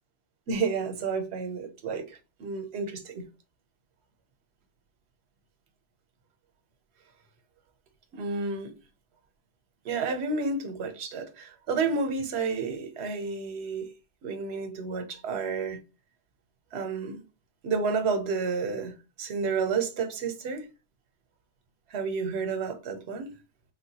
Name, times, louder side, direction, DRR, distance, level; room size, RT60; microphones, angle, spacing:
voice 1, 0.5-3.2 8.1-8.7 9.8-13.9 14.2-15.8 16.7-17.2 17.6-18.9 19.2-20.7 21.9-23.3, right 4 dB, 70° right, 1.0 m, -30 dB
3.6 x 2.2 x 2.7 m
omnidirectional pair, 1.1 m